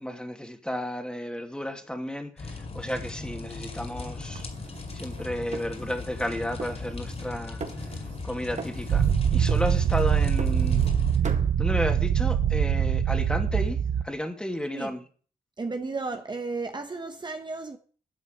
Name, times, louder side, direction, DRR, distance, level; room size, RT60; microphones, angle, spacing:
voice 1, 0.0-4.4 4.9-7.6 8.2-9.0 9.3-10.8 11.6-13.8 14.0-15.0, equal, 5° left, 2.5 m, -32 dB
sound 1, 2.4-11.2, left 3 dB, 45° left, 4.4 m, -38 dB
sound 2, 4.4-6.3 6.6-7.3 7.6-8.3 8.6-9.2 9.5-11.0 11.2-11.5, right 4 dB, 55° right, 2.0 m, -41 dB
sound 3, 8.9-14.0, right 8 dB, 75° right, 0.9 m, -23 dB
voice 2, 15.6-17.8, right 3 dB, 30° right, 1.1 m, -33 dB
12.0 x 6.2 x 9.2 m
cardioid pair, 70°, 15 cm